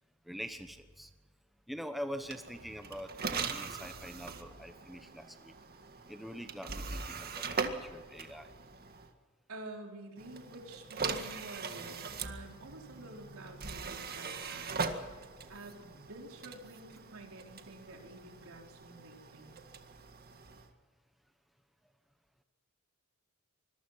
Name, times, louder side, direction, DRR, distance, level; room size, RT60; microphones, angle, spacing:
voice 1, 0.2-1.1 1.7-5.5 6.1-8.5, equal, ahead, 7 dB, 1.1 m, -44 dB
sound 1, 2.2-9.1 10.2-20.7, right 4 dB, 45° right, 1.9 m, -41 dB
voice 2, 9.5-19.5, right 2 dB, 70° right, 2 dB, 4.5 m, -49 dB
25.5 x 21.5 x 5.8 m, 1.5 s
head